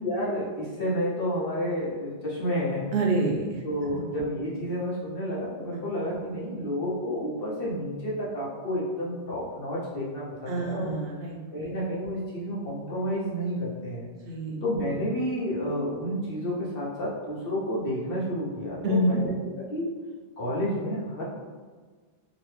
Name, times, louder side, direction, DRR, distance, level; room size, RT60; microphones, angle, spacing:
voice 1, 0.0-2.9 3.6-10.9 11.5-14.1 14.6-19.9 20.4-21.2, equal, 65° left, -6 dB, 1.0 m, -30 dB
voice 2, 2.9-3.6 10.5-11.4 14.3-14.6 18.8-19.2, right 1 dB, 75° right, -1 dB, 0.9 m, -26 dB
2.9 x 2.5 x 3.2 m, 1.5 s
omnidirectional pair, 1.0 m